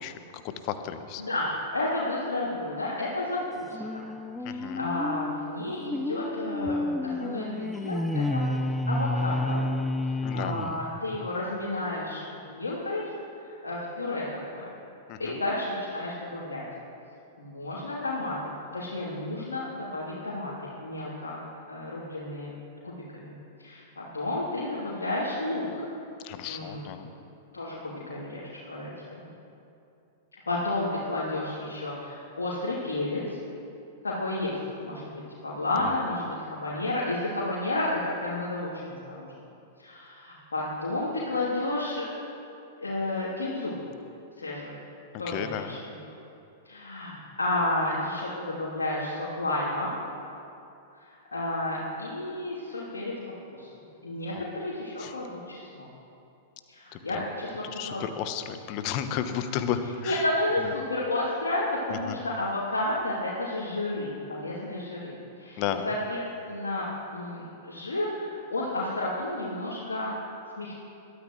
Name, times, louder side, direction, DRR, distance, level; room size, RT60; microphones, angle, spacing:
voice 1, 0.0-1.2 4.4-4.9 10.2-10.7 15.1-15.4 26.2-27.1 35.8-36.0 45.3-45.8 54.3-54.4 55.0-55.1 56.9-57.3 57.6-60.2 60.6-60.7 61.9-62.2 65.6-65.9, left 9 dB, 40° left, 9 dB, 1.0 m, -33 dB
voice 2, 1.2-3.8 4.5-8.4 8.9-9.6 10.1-13.0 13.4-14.3 14.5-14.6 15.2-16.6 17.4-18.4 18.7-21.4 21.7-22.5 22.8-25.8 26.4-26.9 27.5-29.2 30.5-33.4 34.0-39.3 39.8-42.1 42.8-43.8 44.4-44.8 45.2-45.9 46.6-49.9 51.0-53.1 53.5-53.7 54.0-55.8 56.7-58.0 60.0-66.2 66.5-70.2 70.6-70.8, left 2 dB, 75° left, -8 dB, 3.0 m, -31 dB
sound 1, 3.7-11.3, left 1 dB, 5° left, 0.5 m, -30 dB
21.0 x 13.0 x 3.2 m, 2.7 s
figure-of-eight pair, 100°, 0 cm